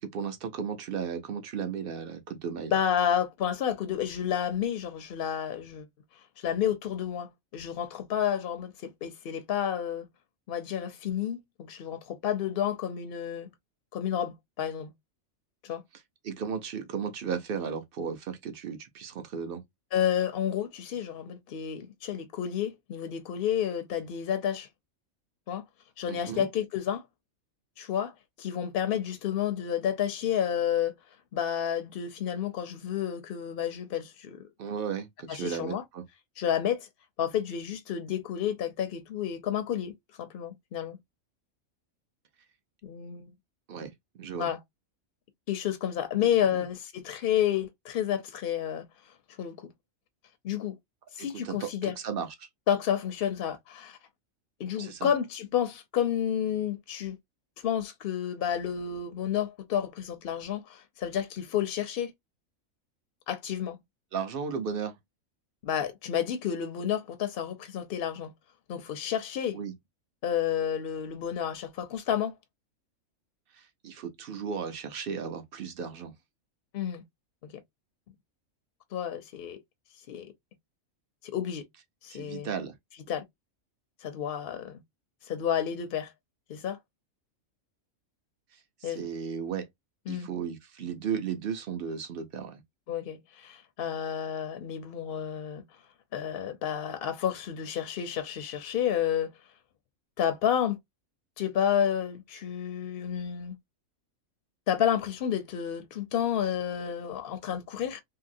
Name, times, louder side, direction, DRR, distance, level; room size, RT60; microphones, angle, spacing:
voice 1, 0.1-2.7 16.2-19.6 26.1-26.5 34.6-36.0 43.7-43.9 44.2-44.5 46.5-46.6 51.2-52.5 54.8-55.1 64.1-65.0 69.5-69.7 73.5-76.1 82.1-82.7 88.5-89.7 90.1-92.6, right 6 dB, 60° right, 0.6 m, -35 dB
voice 2, 2.7-5.9 6.4-10.0 10.5-13.5 13.9-14.9 15.6-15.8 19.9-24.7 25.5-25.6 26.0-27.0 27.8-30.9 31.3-34.5 35.3-35.8 36.4-36.9 37.2-39.9 40.2-41.0 42.8-43.3 44.4-44.6 45.5-49.7 50.4-50.8 51.1-52.0 52.7-54.0 54.6-57.2 57.6-62.1 63.3-63.8 65.6-68.3 68.7-69.6 70.2-72.3 76.7-77.0 77.4-77.5 78.9-79.6 80.1-80.3 81.3-81.6 82.0-82.5 83.1-83.2 84.0-84.8 85.2-86.1 86.5-86.8 88.8-89.1 90.1-90.3 92.9-95.6 96.1-99.3 100.2-100.8 101.4-103.6 104.7-108.0, left 9 dB, 60° left, 0.6 m, -30 dB
2.8 x 2.7 x 2.5 m
omnidirectional pair, 1.4 m